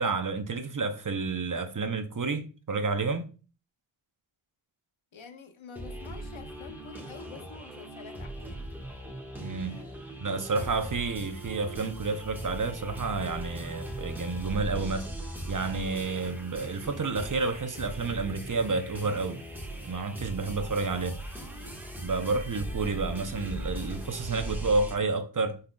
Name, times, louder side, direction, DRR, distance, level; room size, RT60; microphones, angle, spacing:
voice 1, 0.0-3.3 9.4-9.7 10.2-19.4 19.9-21.2 22.0-25.6, right 3 dB, 40° right, 0.7 m, -30 dB
voice 2, 5.1-8.7 9.7-10.1, left 5 dB, 75° left, 0.8 m, -47 dB
sound 1, 5.8-25.0, right 1 dB, 5° right, 1.5 m, -39 dB
5.4 x 3.8 x 2.3 m
wide cardioid pair, 50°, 47 cm